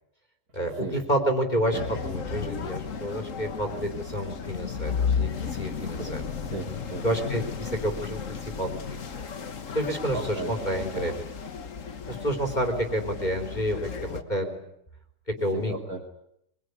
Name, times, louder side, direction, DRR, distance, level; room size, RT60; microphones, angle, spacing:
voice 1, 0.5-6.2 7.0-9.0 9.7-11.1 12.1-14.6 15.4-15.7, equal, 30° left, 4 dB, 3.8 m, -29 dB
sound 1, 1.7-14.2, left 6 dB, 60° left, 1.8 m, -34 dB
voice 2, 5.8-7.0 10.1-11.1 15.5-16.0, right 2 dB, 85° right, 3 dB, 3.1 m, -36 dB
24.5 x 22.5 x 9.6 m, 0.76 s
omnidirectional pair, 1.6 m